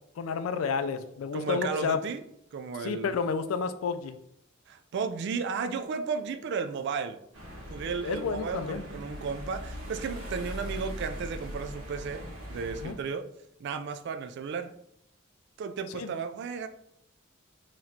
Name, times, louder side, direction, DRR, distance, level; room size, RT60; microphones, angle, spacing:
voice 1, 0.2-2.0 2.8-4.2 8.0-8.8 12.8-13.0 15.9-16.1, left 5 dB, 90° left, 10 dB, 0.4 m, -30 dB
voice 2, 1.3-2.2 2.5-3.1 4.7-7.2 7.7-12.2 12.5-13.3 13.6-14.7 15.6-16.7, right 5 dB, 55° right, 8 dB, 0.3 m, -34 dB
sound 1, 7.3-12.9, equal, 75° right, 1.4 m, -40 dB
4.0 x 3.0 x 2.7 m, 0.74 s
head